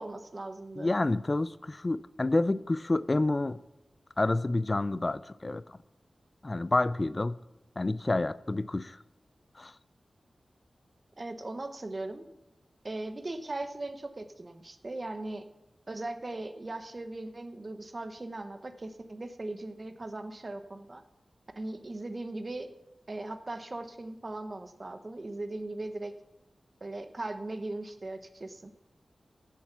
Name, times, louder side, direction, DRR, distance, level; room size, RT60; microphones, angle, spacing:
voice 1, 0.0-0.9 11.2-12.2 12.8-15.4 15.9-21.0 21.6-22.7 23.1-26.1 26.8-28.7, right 2 dB, 40° right, 8 dB, 1.0 m, -39 dB
voice 2, 0.8-3.6 4.2-5.8 6.4-7.4 7.8-9.0 9.6-9.7, left 2 dB, 35° left, 17 dB, 0.4 m, -29 dB
15.0 x 7.3 x 6.0 m, 0.91 s
wide cardioid pair, 70°, 0 cm